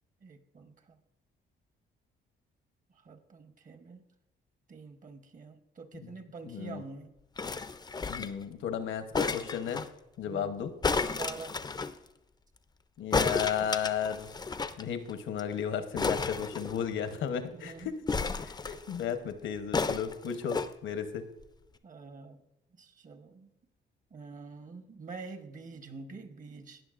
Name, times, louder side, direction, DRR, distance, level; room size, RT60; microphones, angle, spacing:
voice 1, 0.2-1.0 2.9-4.0 4.7-7.1 10.3-10.6 11.1-11.6 17.5-17.9 21.8-22.4 22.8-23.5 24.1-26.8, right 4 dB, 40° right, 8 dB, 1.0 m, -46 dB
voice 2, 6.5-6.8 8.1-9.9 10.2-10.7 13.0-14.3 14.8-18.0 18.4-21.2, left 8 dB, 75° left, 9 dB, 0.9 m, -34 dB
sound 1, 7.4-8.4 9.1-9.9 10.8-11.9 13.1-14.8 15.1-15.2 15.4-15.5 16.0-17.1 18.1-19.0 19.7-20.7 21.4-21.5, left 4 dB, 20° left, 0.5 m, -32 dB
18.0 x 6.1 x 2.5 m, 0.93 s
cardioid pair, 90°, 20 cm